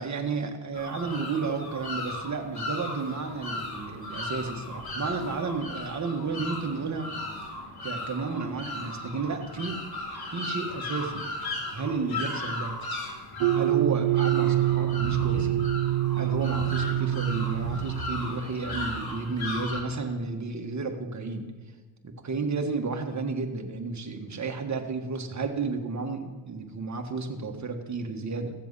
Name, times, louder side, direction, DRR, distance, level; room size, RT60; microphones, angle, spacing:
voice 1, 0.0-7.1 7.8-9.8 10.3-11.3 11.7-12.7 13.5-15.7 16.1-21.4 22.0-28.5, right 4 dB, 35° right, 4 dB, 1.6 m, -32 dB
sound 1, 0.7-19.8, left 2 dB, 50° left, 3.0 m, -36 dB
sound 2, 13.4-18.6, right 14 dB, 70° right, 0.6 m, -26 dB
16.0 x 7.5 x 5.7 m, 1.4 s
cardioid pair, 100°, 47 cm